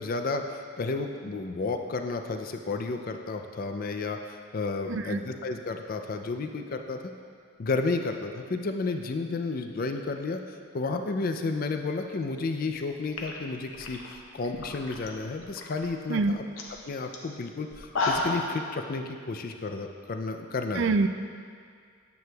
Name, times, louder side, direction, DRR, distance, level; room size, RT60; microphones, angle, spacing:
voice 1, 0.0-7.0 7.6-10.4 10.7-16.4 16.9-20.9, left 3 dB, 45° left, 5 dB, 0.4 m, -32 dB
voice 2, 4.9-5.2 16.1-16.4 20.7-21.1, right 3 dB, 60° right, 9 dB, 0.3 m, -25 dB
sound 1, 12.7-12.8 13.1-15.1 15.4-15.9 16.2-16.3 16.6-16.8 17.1-17.2 17.7-18.5, left 2 dB, 65° left, 0.8 m, -32 dB
9.3 x 7.7 x 2.3 m, 2.1 s
head